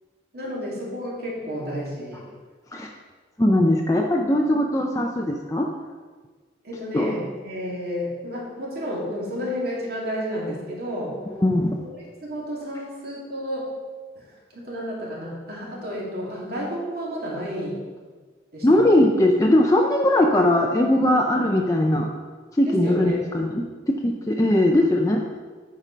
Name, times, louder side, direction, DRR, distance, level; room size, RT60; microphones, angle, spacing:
voice 1, 0.3-2.3 6.6-11.2 11.9-13.7 14.2-14.3 14.5-17.8 18.5-18.7 22.6-23.2, equal, 60° right, -4 dB, 2.5 m, -31 dB
voice 2, 3.4-5.7 6.9-7.1 11.4-11.8 18.6-22.1 22.5-25.2, left 1 dB, 20° left, 0 dB, 0.5 m, -20 dB
8.9 x 4.8 x 5.6 m, 1.4 s
head